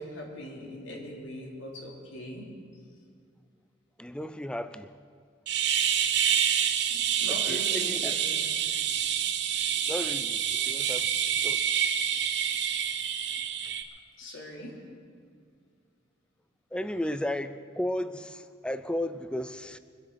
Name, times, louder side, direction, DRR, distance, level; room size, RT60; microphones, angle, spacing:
voice 1, 0.0-2.5 6.9-8.6 14.2-14.8, left 1 dB, 75° left, -2 dB, 3.2 m, -41 dB
voice 2, 4.0-5.0 7.5-8.2 9.9-11.1 11.4-11.6 16.7-19.8, left 1 dB, 5° left, 12 dB, 0.4 m, -34 dB
sound 1, 5.5-13.8, right 9 dB, 60° right, 0.9 m, -27 dB
24.0 x 8.2 x 6.3 m, 2.2 s
head